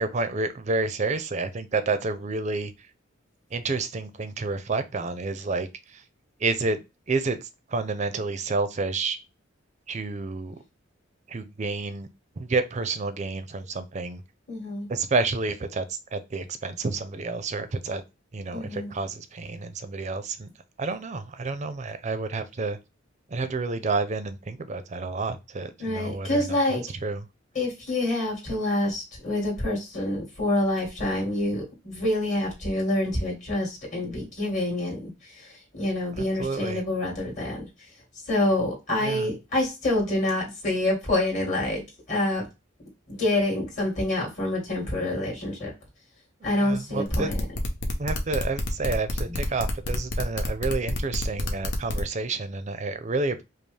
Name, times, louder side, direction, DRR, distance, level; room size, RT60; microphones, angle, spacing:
voice 1, 0.0-2.7 3.5-6.0 6.4-9.2 9.9-10.6 11.3-12.1 12.4-14.2 14.9-18.0 18.3-20.5 20.8-22.8 23.3-26.6 27.0-27.2 36.2-36.8 39.0-39.3 46.4-47.3 48.0-53.4, right 3 dB, 35° right, 11 dB, 0.5 m, -29 dB
voice 2, 14.5-14.9 18.5-18.9 25.8-26.8 27.5-37.6 38.3-41.8 42.1-42.5 43.1-45.7 46.4-47.3 49.3-49.4, left 1 dB, 40° left, -2 dB, 1.9 m, -27 dB
sound 1, 47.1-52.0, left 2 dB, 65° left, 0.8 m, -30 dB
5.1 x 2.0 x 3.3 m, 0.25 s
head